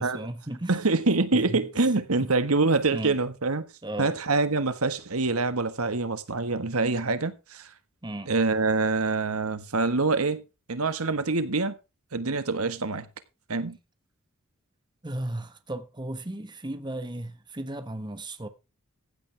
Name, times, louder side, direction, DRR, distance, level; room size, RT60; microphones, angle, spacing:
voice 1, 0.0-0.8 1.3-1.9 2.2-2.3 2.9-3.2 3.8-4.1 8.0-8.3 15.0-18.5, right 1 dB, 20° right, 1.3 m, -35 dB
voice 2, 0.7-3.6 4.0-7.7 8.3-10.4 10.7-11.8 12.1-13.1 13.5-13.8, right 3 dB, 85° right, 1.5 m, -25 dB
15.5 x 9.0 x 3.3 m
head